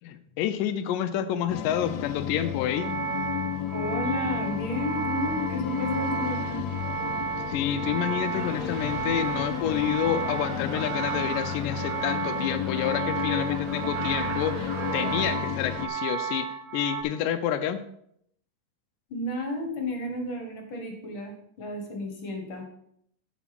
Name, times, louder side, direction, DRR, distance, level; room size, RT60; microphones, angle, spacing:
voice 1, 0.0-2.9 7.5-16.5 16.7-17.8, left 10 dB, 90° left, 10 dB, 2.3 m, -28 dB
sound 1, 1.5-15.9, left 10 dB, 75° left, 1.7 m, -33 dB
sound 2, 2.6-17.0, right 7 dB, 25° right, 2.5 m, -33 dB
voice 2, 3.7-6.7 19.1-22.7, left 1 dB, 50° left, 3 dB, 1.8 m, -32 dB
sound 3, 8.3-15.4, right 4 dB, 80° right, 3.0 m, -39 dB
9.3 x 6.0 x 5.9 m, 0.70 s
omnidirectional pair, 3.7 m